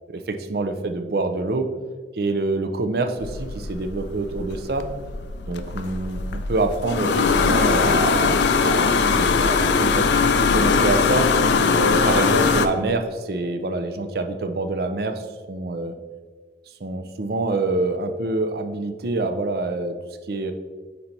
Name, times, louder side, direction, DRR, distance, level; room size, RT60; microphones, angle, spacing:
voice 1, 0.1-1.7 2.1-4.9 5.5-11.3 11.7-15.9 16.8-20.0 20.3-20.5, right 2 dB, 60° right, 6 dB, 0.5 m, -26 dB
sound 1, 3.2-12.7, left 5 dB, 80° left, 0.4 m, -21 dB
5.2 x 4.2 x 4.4 m, 1.4 s
head